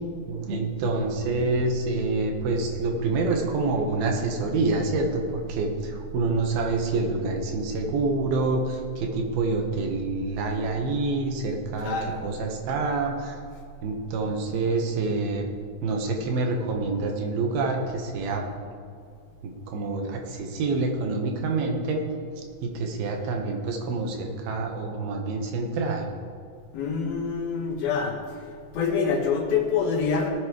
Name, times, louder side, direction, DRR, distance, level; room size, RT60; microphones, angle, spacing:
voice 1, 0.3-12.0 12.2-13.4 13.8-15.5 15.8-18.5 19.4-22.0 22.4-26.1, right 3 dB, 85° right, 2 dB, 3.1 m, -27 dB
voice 2, 11.8-12.2 26.7-28.2 28.7-30.3, left 5 dB, 80° left, 0 dB, 3.4 m, -26 dB
18.5 x 8.7 x 3.2 m, 2.3 s
omnidirectional pair, 4.3 m